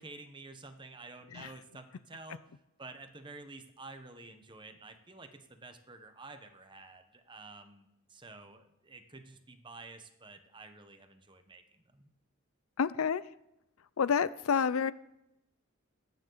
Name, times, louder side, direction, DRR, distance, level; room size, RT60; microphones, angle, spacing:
voice 1, 0.0-12.1, right 3 dB, 20° right, 7 dB, 1.1 m, -50 dB
voice 2, 12.8-13.2 14.0-14.9, left 6 dB, 85° left, 17 dB, 0.5 m, -28 dB
23.0 x 9.4 x 4.0 m, 0.86 s
head